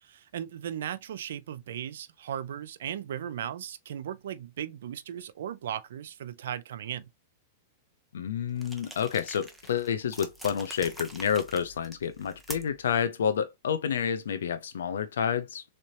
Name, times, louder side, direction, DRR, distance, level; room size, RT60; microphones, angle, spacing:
voice 1, 0.0-7.1, right 10 dB, 80° right, 0.5 m, -37 dB
voice 2, 8.1-15.6, left 7 dB, 90° left, 0.6 m, -29 dB
sound 1, 8.6-12.9, right 1 dB, ahead, 0.8 m, -45 dB
3.7 x 3.3 x 2.9 m
hypercardioid pair, 140°, 0 cm